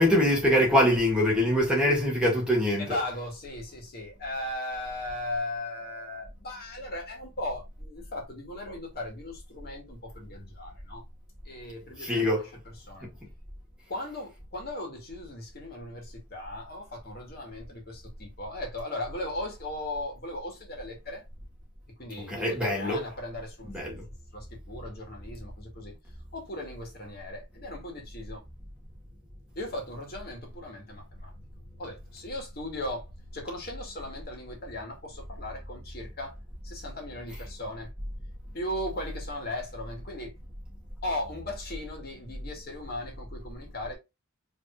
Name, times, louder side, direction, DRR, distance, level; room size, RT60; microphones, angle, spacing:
voice 1, 0.0-2.8 12.0-12.4 22.3-23.0 23.7-24.0, left 1 dB, 5° right, 2.0 m, -23 dB
voice 2, 2.8-11.0 11.4-13.1 13.9-21.2 22.0-24.0 24.3-25.9 26.3-28.4 29.6-31.3 31.8-36.4 36.6-37.9 38.5-40.3 41.0-43.9, left 1 dB, 50° left, 2.1 m, -37 dB
5.0 x 3.6 x 2.4 m
head